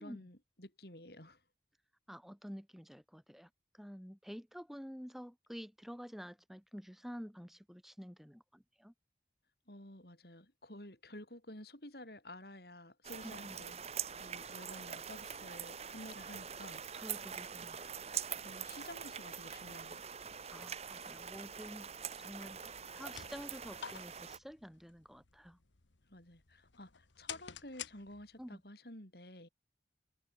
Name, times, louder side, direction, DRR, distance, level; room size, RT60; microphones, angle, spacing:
voice 1, 0.0-1.4 9.7-17.2 18.4-20.4 26.1-29.5, left 1 dB, 55° left, 6.1 m, -52 dB
voice 2, 2.1-8.9 13.2-13.7 16.9-17.8 20.5-21.9 22.2-22.6 22.8-25.6 28.4-28.6, equal, ahead, 3.6 m, -49 dB
sound 1, 13.0-24.4, right 8 dB, 35° right, 1.1 m, -44 dB
sound 2, 22.8-28.5, left 8 dB, 90° left, 1.5 m, -51 dB
head